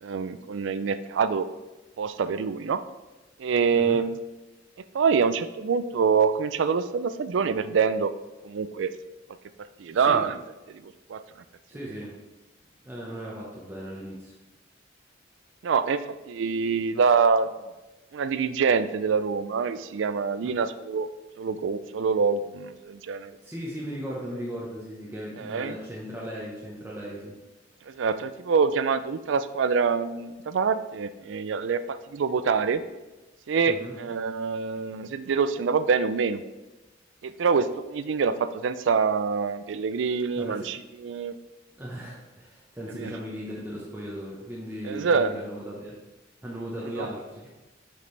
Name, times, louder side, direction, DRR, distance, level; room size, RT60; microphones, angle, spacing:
voice 1, 0.0-1.5 2.0-2.8 3.4-4.2 4.9-8.1 8.4-8.9 9.8-10.4 10.7-11.2 15.6-17.5 18.1-21.1 21.4-23.3 25.4-25.7 27.9-32.8 33.5-36.4 37.2-41.3 43.0-43.1 44.8-45.3 47.0-47.1, right 5 dB, 70° right, 13 dB, 0.4 m, -25 dB
voice 2, 11.7-12.2 12.8-14.3 20.4-20.5 23.4-27.3 33.7-33.9 40.4-40.7 41.8-45.9 46.4-47.5, equal, 10° right, -5 dB, 0.9 m, -37 dB
6.7 x 5.3 x 3.2 m, 1.1 s
head